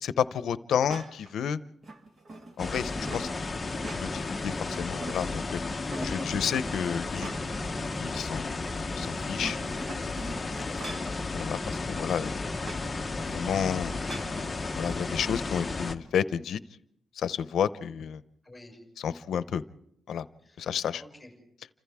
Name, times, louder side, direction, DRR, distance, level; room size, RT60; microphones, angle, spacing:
voice 1, 0.0-1.6 2.6-3.3 3.9-5.4 6.0-7.3 8.0-9.6 11.3-12.3 13.2-14.5 14.8-16.6 17.2-18.2 19.0-19.6 20.1-20.2 20.6-21.0, left 8 dB, 80° left, 14 dB, 0.7 m, -31 dB
sound 1, 0.9-1.3 1.8-3.3 3.7-4.4 4.8-5.5 5.9-7.7 8.1-8.2 9.2-11.2 12.6-12.9 14.1-14.4, right 1 dB, 35° right, 1.5 m, -42 dB
sound 2, 2.6-16.0, left 3 dB, 20° left, 0.9 m, -33 dB
voice 2, 5.8-6.3 10.5-11.1 18.4-18.8 20.4-20.6 20.9-21.3, left 2 dB, ahead, 1 dB, 6.2 m, -48 dB
29.5 x 26.5 x 3.6 m, 0.75 s
wide cardioid pair, 180°, 0 cm